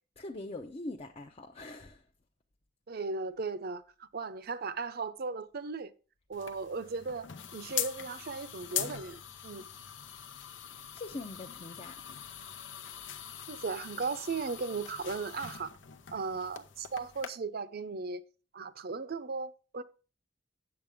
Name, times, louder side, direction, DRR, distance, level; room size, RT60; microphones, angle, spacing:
voice 1, 0.2-2.0 10.9-12.0, left 2 dB, 35° left, 0.6 m, -42 dB
voice 2, 2.9-5.9 6.3-9.7 13.5-15.7 16.1-18.2 18.5-19.8, right 4 dB, 55° right, 0.6 m, -37 dB
sound 1, 6.3-17.3, left 9 dB, 85° left, 0.8 m, -42 dB
8.6 x 7.4 x 3.5 m
head